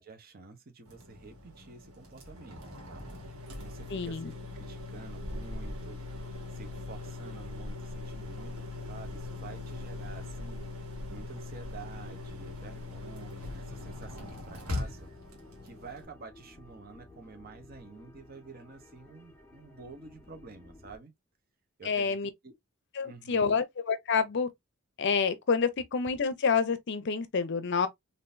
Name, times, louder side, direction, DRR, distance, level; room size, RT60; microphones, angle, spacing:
voice 1, 0.0-6.0 6.5-8.5 8.9-10.6 11.1-15.1 15.6-21.1 21.8-22.2 22.4-22.5 23.0-23.6, right 4 dB, 45° right, 0.8 m, -49 dB
sound 1, 0.8-16.0, left 2 dB, 80° right, 1.5 m, -41 dB
voice 2, 3.9-4.3 21.8-22.3 22.9-24.5 25.0-27.9, left 5 dB, 55° left, 0.5 m, -28 dB
sound 2, 11.9-21.0, left 2 dB, 10° left, 1.6 m, -55 dB
3.7 x 2.6 x 2.6 m
head